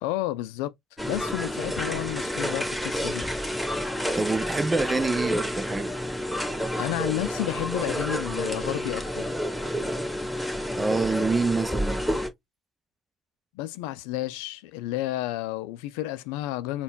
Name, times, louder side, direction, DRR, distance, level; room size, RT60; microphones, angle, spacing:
voice 1, 0.0-0.7 1.0-3.3 6.8-9.3 13.5-16.8, left 15 dB, 70° left, 0.3 m, -31 dB
sound 1, 1.0-12.3, equal, ahead, 1.1 m, -29 dB
voice 2, 4.1-5.9 10.8-12.0, right 3 dB, 20° right, 0.6 m, -26 dB
5.5 x 2.3 x 2.4 m
hypercardioid pair, 55°, 0 cm